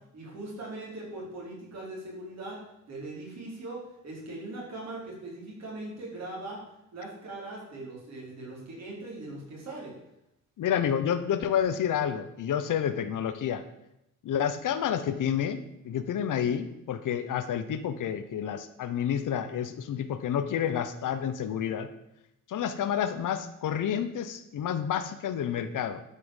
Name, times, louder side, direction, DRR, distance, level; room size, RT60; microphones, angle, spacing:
voice 1, 0.1-6.6 6.9-10.0, right 2 dB, 55° right, -3 dB, 4.7 m, -40 dB
voice 2, 10.6-13.6 14.2-21.9 22.5-26.0, left 9 dB, 75° left, 10 dB, 1.0 m, -29 dB
12.0 x 5.7 x 7.3 m, 0.84 s
wide cardioid pair, 175°, 31 cm